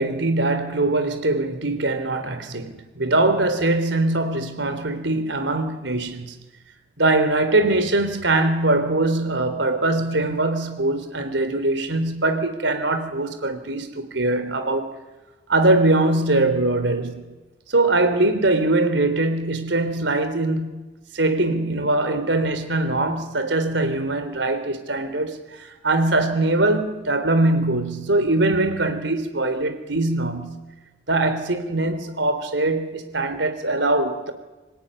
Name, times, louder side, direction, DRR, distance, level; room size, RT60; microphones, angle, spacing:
voice 1, 0.0-6.3 7.0-14.9 15.5-17.3 17.7-20.8 21.1-30.6 31.1-34.3, right 2 dB, 85° right, 3.7 m, -22 dB
26.0 x 17.5 x 9.9 m
head